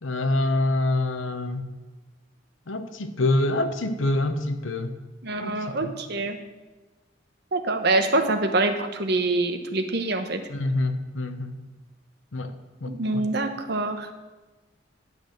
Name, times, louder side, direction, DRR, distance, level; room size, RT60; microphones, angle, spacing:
voice 1, 0.0-1.6 2.7-5.0 5.4-5.5 5.8-5.9 10.5-11.5 12.3-12.5 12.8-13.2, left 2 dB, 85° left, 8 dB, 0.9 m, -26 dB
voice 2, 5.2-6.4 7.5-10.4 12.9-14.1, right 2 dB, 55° right, 6 dB, 1.0 m, -25 dB
11.0 x 6.0 x 6.6 m, 1.2 s
head